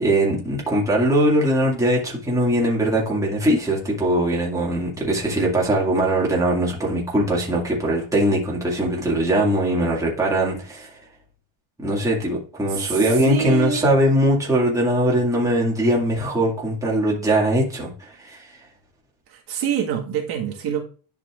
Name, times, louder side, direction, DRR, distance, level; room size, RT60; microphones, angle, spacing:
voice 1, 0.0-10.9 11.8-18.5, right 1 dB, 5° right, 2.1 m, -21 dB
voice 2, 12.7-13.9 19.3-20.8, right 6 dB, 50° right, 1.7 m, -26 dB
10.5 x 5.8 x 2.5 m
cardioid pair, 155°, 50 cm